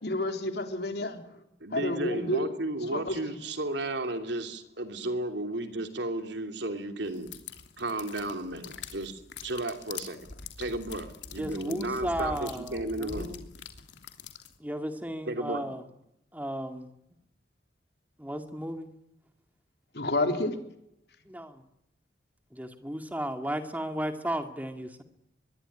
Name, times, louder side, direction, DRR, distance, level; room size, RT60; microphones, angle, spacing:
voice 1, 0.0-1.2 1.7-2.5 2.8-3.4 19.9-20.5, left 2 dB, 65° left, 6 dB, 3.6 m, -30 dB
voice 2, 1.6-7.3 7.8-10.3 10.6-13.3 15.3-15.7, right 1 dB, 80° right, 7 dB, 3.1 m, -34 dB
sound 1, 7.1-14.6, left 5 dB, 90° left, 3.0 m, -44 dB
voice 3, 11.4-13.4 14.6-15.8 16.3-16.9 18.2-18.9 21.3-21.6 22.5-25.0, equal, 10° right, 7 dB, 2.1 m, -34 dB
24.5 x 21.0 x 10.0 m, 0.81 s
head